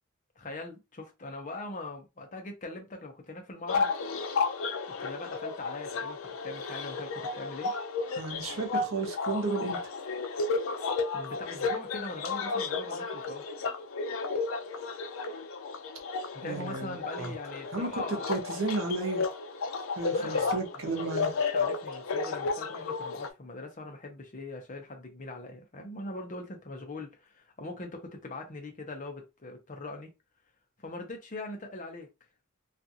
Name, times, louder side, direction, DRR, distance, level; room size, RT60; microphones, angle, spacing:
voice 1, 0.4-3.9 4.9-7.7 11.1-13.5 16.3-18.3 20.1-20.6 21.5-30.1 30.8-32.1, left 2 dB, 35° left, 0.7 m, -41 dB
sound 1, 3.7-23.3, left 4 dB, 70° left, 0.4 m, -33 dB
voice 2, 8.1-9.8 16.4-17.3 17.7-19.3 19.9-21.3, right 3 dB, 70° right, 0.8 m, -33 dB
2.5 x 2.4 x 2.7 m
head